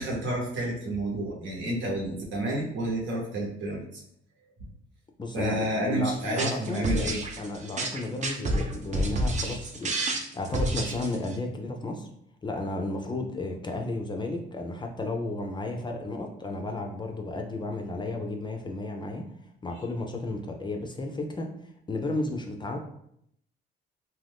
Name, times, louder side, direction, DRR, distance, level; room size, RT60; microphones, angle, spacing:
voice 1, 0.0-4.0 5.3-7.2 19.7-19.8, right 1 dB, 70° right, -2 dB, 1.0 m, -30 dB
voice 2, 5.2-9.9 10.3-12.1 12.4-19.3 19.6-21.5 21.9-22.8, left 2 dB, 25° left, 2 dB, 0.4 m, -33 dB
sound 1, 6.2-11.4, right 1 dB, 35° right, 0.5 m, -29 dB
2.5 x 2.2 x 3.4 m, 0.71 s
cardioid pair, 90°, 20 cm